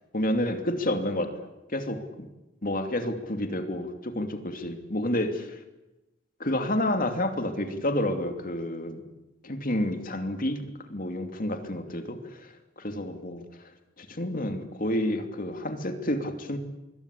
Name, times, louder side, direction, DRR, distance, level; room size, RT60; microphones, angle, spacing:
voice 1, 0.1-2.3 2.6-5.6 6.4-9.0 9.4-13.7 14.0-16.6, left 1 dB, 45° left, 6 dB, 2.8 m, -30 dB
25.5 x 23.5 x 8.5 m, 1.0 s
head